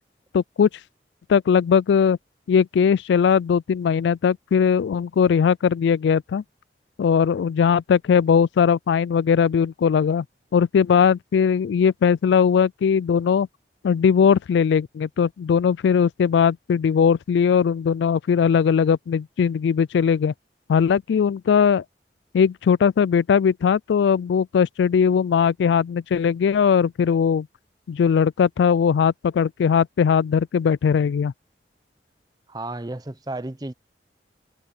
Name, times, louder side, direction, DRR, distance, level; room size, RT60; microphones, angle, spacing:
voice 1, 0.3-0.7 1.3-2.2 2.5-6.4 7.0-10.2 10.5-13.5 13.8-20.3 20.7-21.8 22.3-27.5 27.9-31.3, left 7 dB, 85° left, 0.3 m, -19 dB
voice 2, 32.5-33.7, right 2 dB, 20° right, 0.6 m, -32 dB
head